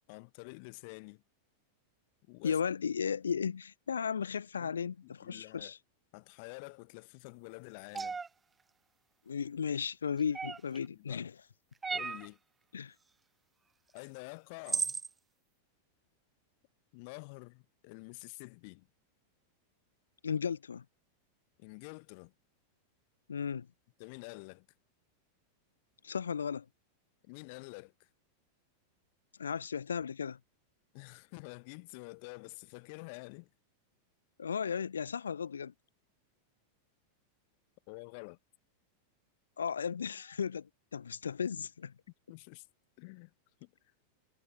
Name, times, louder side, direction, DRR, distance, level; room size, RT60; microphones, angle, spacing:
voice 1, 0.1-1.2 2.3-2.6 4.6-4.8 5.0-5.7 6.1-8.2 10.7-11.2 11.9-12.4 13.9-14.9 16.9-18.9 21.6-22.3 24.0-24.7 27.2-28.1 30.9-33.5 37.9-38.4 42.3-42.7 43.0-43.3 43.6-43.7, left 32 dB, 45° left, 1.1 m, -48 dB
voice 2, 2.4-5.8 9.3-11.3 12.7-12.9 20.2-20.8 23.3-23.7 26.0-26.6 29.4-30.4 34.4-35.7 39.6-41.9, left 7 dB, 70° left, 0.9 m, -35 dB
sound 1, 7.9-8.3 10.3-10.8 11.8-12.3 14.0-14.1 14.7-15.1, right 4 dB, 15° right, 0.5 m, -34 dB
figure-of-eight pair, 90°, 0 cm